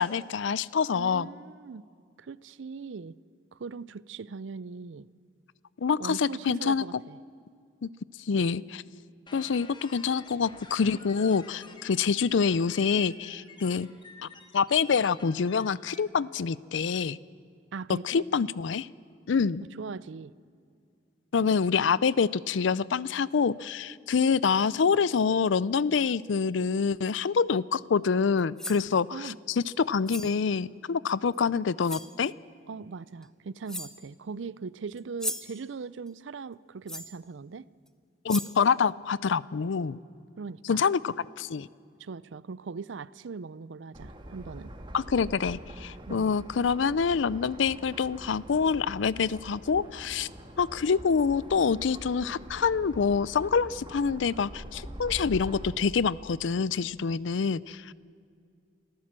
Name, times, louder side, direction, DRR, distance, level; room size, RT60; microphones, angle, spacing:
voice 1, 0.0-1.3 5.8-7.0 7.8-7.9 8.3-8.8 9.3-13.9 14.2-14.3 14.5-17.2 18.0-18.9 19.3-19.6 21.3-32.3 38.2-40.0 40.7-41.7 44.9-50.3 50.6-57.9, left 5 dB, 75° left, 0.5 m, -26 dB
voice 2, 0.9-1.8 2.2-3.2 3.5-5.1 6.0-7.2 17.7-18.3 19.8-20.3 29.1-29.4 32.7-37.7 40.4-40.8 42.0-44.7 46.1-46.4, right 5 dB, 75° right, 0.5 m, -40 dB
sound 1, 9.3-16.0, left 3 dB, 25° left, 1.4 m, -51 dB
sound 2, 28.4-28.9 30.1-30.4 31.3-31.4 31.8-32.2 33.2-33.3 33.7-34.1 35.0-35.6 36.9-37.2 37.9-38.0 38.3-38.6, left 1 dB, 5° left, 0.8 m, -37 dB
sound 3, 43.9-55.7, right 1 dB, 25° right, 1.8 m, -44 dB
26.0 x 14.5 x 7.5 m
head